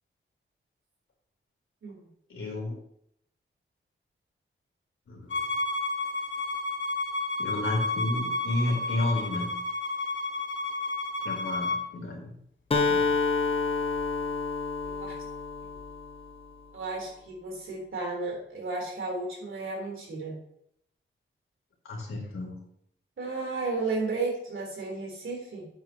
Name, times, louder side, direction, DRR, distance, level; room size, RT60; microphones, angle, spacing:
voice 1, 2.3-2.8 5.1-5.5 7.4-9.5 11.2-12.3 12.9-13.2 21.8-22.6, left 2 dB, 85° left, -2 dB, 3.8 m, -31 dB
Bowed string instrument, 5.3-11.8, left 2 dB, 65° left, 1.3 m, -31 dB
Acoustic guitar, 12.7-16.6, left 4 dB, 25° left, 1.0 m, -29 dB
voice 2, 14.8-15.2 16.7-20.4 23.2-25.7, right 3 dB, 70° right, -1 dB, 3.7 m, -33 dB
11.0 x 8.5 x 3.0 m, 0.71 s
wide cardioid pair, 175°, 21 cm